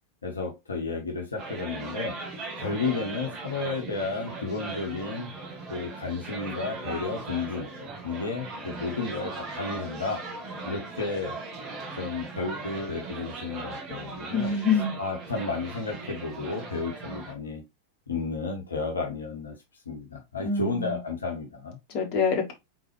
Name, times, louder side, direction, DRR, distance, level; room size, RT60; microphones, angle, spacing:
voice 1, 0.2-2.2 2.6-5.3 5.7-7.7 8.0-10.2 10.6-11.4 12.0-14.5 15.0-17.6 18.1-19.5 19.9-21.8, left 4 dB, 75° left, 1.0 m, -32 dB
sound 1, 1.4-17.3, right 3 dB, 30° right, 1.4 m, -39 dB
voice 2, 14.3-14.9 20.4-21.0 21.9-22.5, left 5 dB, 45° left, 1.5 m, -25 dB
3.9 x 3.8 x 3.1 m
figure-of-eight pair, 90°, 0 cm